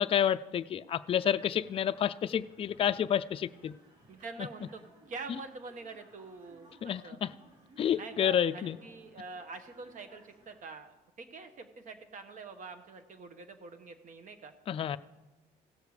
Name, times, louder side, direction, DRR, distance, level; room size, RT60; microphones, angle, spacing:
voice 1, 0.0-3.8 4.4-4.5 6.8-7.3 7.8-8.8 14.7-15.0, left 9 dB, 35° left, 12 dB, 0.4 m, -29 dB
sound 1, 1.2-10.6, right 1 dB, 80° right, 3.1 m, -61 dB
voice 2, 4.1-4.8 5.1-7.2 7.9-14.5, right 4 dB, 50° right, 8 dB, 1.1 m, -45 dB
16.5 x 6.7 x 4.9 m, 1.1 s
cardioid pair, 110°, 17 cm